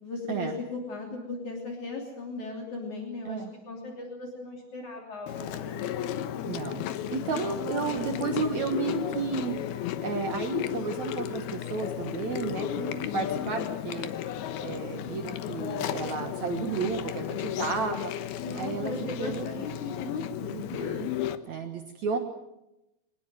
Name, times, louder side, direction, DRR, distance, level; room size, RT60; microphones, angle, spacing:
voice 1, 0.0-5.9 12.7-13.3 18.4-20.6, left 3 dB, 55° left, 1 dB, 4.4 m, -37 dB
Chewing mastication, 5.3-21.4, left 11 dB, 85° left, 3.1 m, -34 dB
voice 2, 6.4-9.5 10.0-12.9 13.1-14.1 14.6-18.1 18.5-19.5 20.5-21.1 21.5-22.2, right 5 dB, 60° right, 5 dB, 2.4 m, -32 dB
25.0 x 20.0 x 7.7 m, 0.89 s
omnidirectional pair, 4.3 m